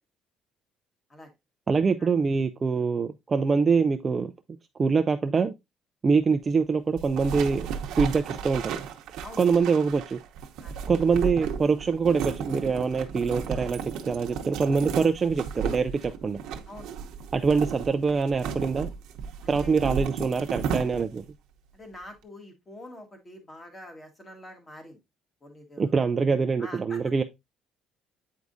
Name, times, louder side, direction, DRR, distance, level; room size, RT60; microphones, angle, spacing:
voice 1, 1.7-4.3 4.8-5.5 6.0-7.7 8.0-8.8 9.4-10.2 10.9-16.4 17.3-18.9 19.5-21.2 25.8-27.2, right 5 dB, 20° right, 0.3 m, -24 dB
sound 1, 7.0-21.3, right 7 dB, 70° right, 0.8 m, -34 dB
voice 2, 19.4-19.7 21.7-25.0 25.4-25.9 26.6-27.0, left 1 dB, 20° left, 1.5 m, -45 dB
8.3 x 4.7 x 2.6 m
cardioid pair, 170°, 0 cm